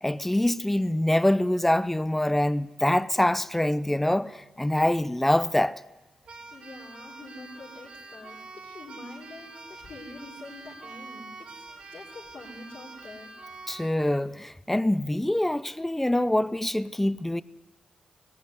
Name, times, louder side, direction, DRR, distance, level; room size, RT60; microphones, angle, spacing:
voice 1, 0.0-5.8 13.7-17.4, left 1 dB, 10° left, 0.7 m, -25 dB
Keyboard (musical), 6.2-14.0, right 3 dB, 65° right, 2.8 m, -45 dB
voice 2, 6.5-13.3, left 2 dB, 60° left, 4.3 m, -45 dB
17.5 x 15.5 x 9.6 m
cardioid pair, 60°, 2 cm